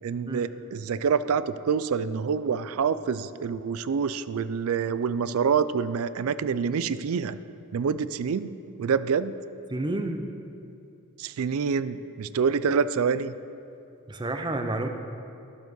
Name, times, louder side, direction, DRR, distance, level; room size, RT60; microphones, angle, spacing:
voice 1, 0.0-7.4 7.7-8.5 8.8-9.4 11.2-13.3, right 6 dB, 70° right, 15 dB, 0.4 m, -26 dB
voice 2, 9.7-10.3 14.1-14.9, right 2 dB, 20° right, 6 dB, 0.6 m, -30 dB
12.0 x 7.0 x 6.1 m, 2.6 s
head